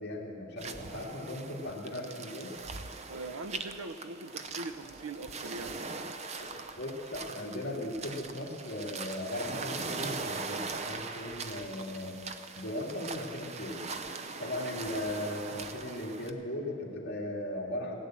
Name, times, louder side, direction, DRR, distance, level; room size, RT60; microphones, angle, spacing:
voice 1, 0.0-2.5 6.4-6.5 6.8-12.2 12.5-13.8 14.4-18.0, left 1 dB, 50° left, -3 dB, 2.3 m, -37 dB
sound 1, 0.6-16.3, right 4 dB, 30° right, 0.5 m, -41 dB
voice 2, 3.1-5.9, right 2 dB, 90° right, 10 dB, 0.8 m, -41 dB
17.0 x 9.0 x 7.5 m, 2.8 s
head